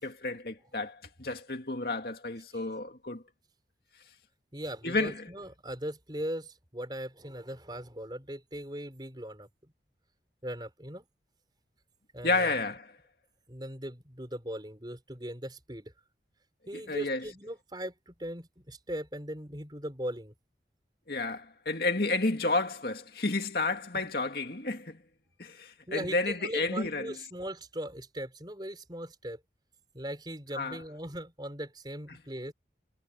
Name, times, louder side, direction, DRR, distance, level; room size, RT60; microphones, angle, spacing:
voice 1, 0.0-3.2 4.8-5.3 12.2-12.9 16.7-17.2 21.1-25.0 25.4-27.1 30.5-30.8, left 3 dB, 60° left, 2.3 m, -31 dB
voice 2, 4.5-9.5 10.4-11.1 12.1-12.5 13.5-15.9 16.7-20.3 23.9-24.1 25.9-29.4 29.9-32.5, equal, 25° right, 5.2 m, -39 dB
head